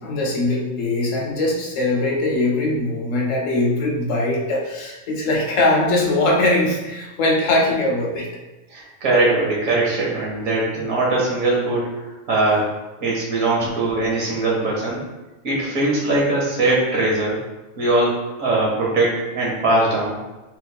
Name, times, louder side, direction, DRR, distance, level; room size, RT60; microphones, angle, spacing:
voice 1, 0.0-8.3 12.5-12.6 13.6-13.7, left 2 dB, 75° left, -2 dB, 1.1 m, -21 dB
voice 2, 8.7-11.9 12.3-12.7 13.0-15.0 15.4-17.4 17.8-20.2, right 2 dB, 85° right, -4 dB, 1.4 m, -21 dB
4.1 x 2.8 x 2.2 m, 1.1 s
omnidirectional pair, 1.4 m